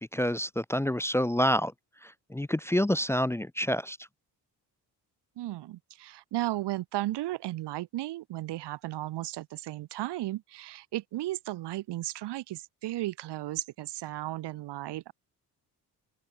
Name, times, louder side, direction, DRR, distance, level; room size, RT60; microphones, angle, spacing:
voice 1, 0.1-1.7 2.0-4.0, equal, 5° left, 0.5 m, -28 dB
voice 2, 5.4-15.1, right 16 dB, 85° right, 1.0 m, -35 dB
open air
cardioid pair, 125°, 41 cm